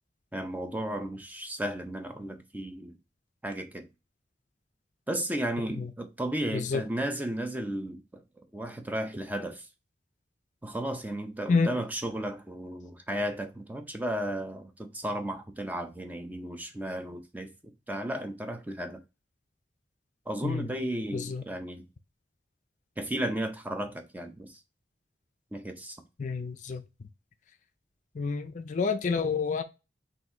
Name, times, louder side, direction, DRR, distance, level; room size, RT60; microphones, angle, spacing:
voice 1, 0.3-3.0 3.4-3.9 5.1-8.2 8.5-9.7 10.6-19.0 20.3-21.9 23.0-24.6 25.5-26.0, right 1 dB, 10° right, 0.5 m, -34 dB
voice 2, 21.1-21.4 26.2-26.8 28.2-29.6, left 4 dB, 45° left, 0.4 m, -28 dB
4.0 x 2.6 x 4.3 m
head